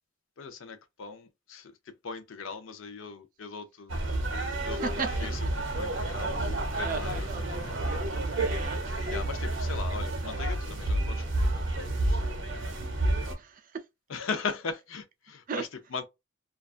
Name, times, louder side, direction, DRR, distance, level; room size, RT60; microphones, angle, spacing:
voice 1, 0.4-4.0 4.6-8.1 9.1-12.4 14.1-16.1, left 5 dB, 75° left, 0.5 m, -39 dB
sound 1, 3.9-13.3, right 1 dB, 70° right, 0.7 m, -30 dB
voice 2, 4.8-5.3 6.8-7.4 8.4-9.1 13.4-13.8 15.5-15.6, right 5 dB, 45° right, 0.4 m, -36 dB
2.3 x 2.3 x 2.4 m
head